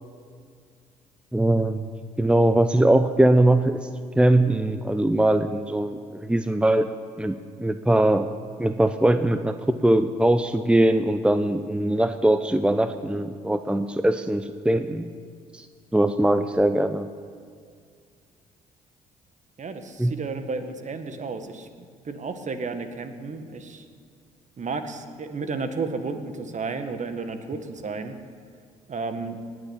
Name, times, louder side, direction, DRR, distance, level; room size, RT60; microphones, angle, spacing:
voice 1, 1.3-1.9 2.2-3.9 4.1-6.9 7.2-8.3 8.6-15.1 15.5-15.7 15.9-17.1 20.0-20.1, right 1 dB, 5° right, 10 dB, 0.8 m, -21 dB
voice 2, 19.6-21.7 22.1-23.9 24.6-28.2 28.9-29.4, right 4 dB, 45° right, 8 dB, 1.8 m, -32 dB
19.0 x 7.6 x 8.5 m, 2.1 s
hypercardioid pair, 50°, 18 cm